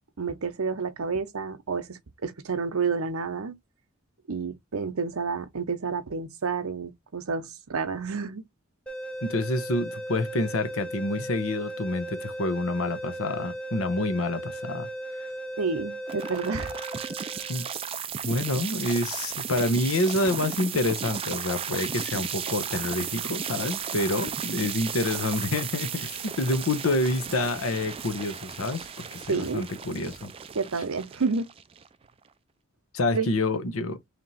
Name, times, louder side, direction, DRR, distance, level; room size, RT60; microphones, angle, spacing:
voice 1, 0.2-3.6 4.3-8.4 15.6-16.7 29.3-29.6 30.5-31.5 33.1-33.3, right 5 dB, 85° right, 0.7 m, -30 dB
sound 1, 8.9-17.8, right 1 dB, 5° left, 0.9 m, -37 dB
voice 2, 9.2-14.9 15.2-15.3 17.5-17.7 18.2-30.3 32.9-34.0, left 2 dB, 75° left, 0.9 m, -28 dB
sound 2, 16.1-32.1, right 7 dB, 25° right, 0.3 m, -35 dB
3.3 x 2.9 x 4.0 m
head